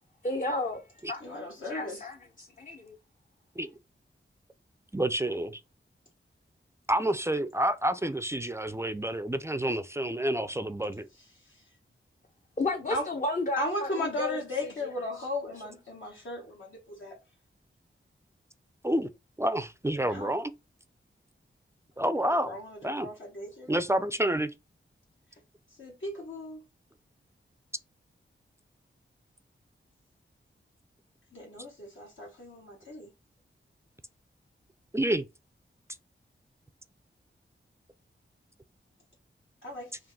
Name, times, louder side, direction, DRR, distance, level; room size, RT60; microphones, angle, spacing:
voice 1, 0.2-0.8 1.1-3.0 12.6-14.7 15.2-15.3, left 2 dB, 40° left, 0.7 m, -33 dB
voice 2, 1.2-2.0 12.9-13.0 13.6-17.1 20.1-20.3 22.2-23.7 25.8-26.6 31.3-33.1 39.6-39.9, left 1 dB, 70° left, 1.2 m, -36 dB
voice 3, 4.9-5.6 6.9-11.1 18.8-19.1 19.4-20.5 22.0-22.6 22.8-23.1 23.7-24.5 34.9-35.2, right 1 dB, 15° right, 0.3 m, -28 dB
3.8 x 2.5 x 3.5 m
cardioid pair, 55°, 21 cm